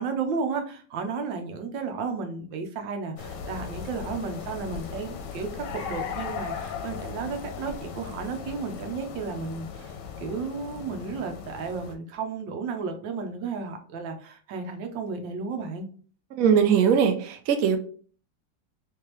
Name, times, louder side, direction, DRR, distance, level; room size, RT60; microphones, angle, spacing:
voice 1, 0.0-15.9, right 5 dB, 80° right, 5 dB, 1.4 m, -33 dB
sound 1, 3.2-11.9, left 6 dB, 75° left, 1.2 m, -37 dB
voice 2, 16.3-17.8, right 7 dB, 65° right, 5 dB, 0.9 m, -21 dB
3.3 x 3.3 x 3.0 m, 0.44 s
omnidirectional pair, 2.0 m